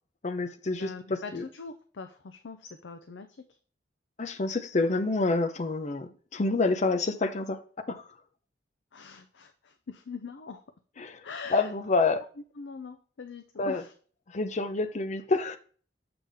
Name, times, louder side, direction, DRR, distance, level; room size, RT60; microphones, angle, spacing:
voice 1, 0.2-1.4 4.2-7.6 7.9-8.1 11.0-11.2 11.5-12.2 13.6-13.8 14.3-15.6, left 3 dB, 40° left, 0.7 m, -28 dB
voice 2, 0.7-3.5 8.9-10.6 11.2-11.7 12.6-13.9, left 4 dB, 85° left, 0.6 m, -42 dB
6.8 x 5.7 x 3.5 m
head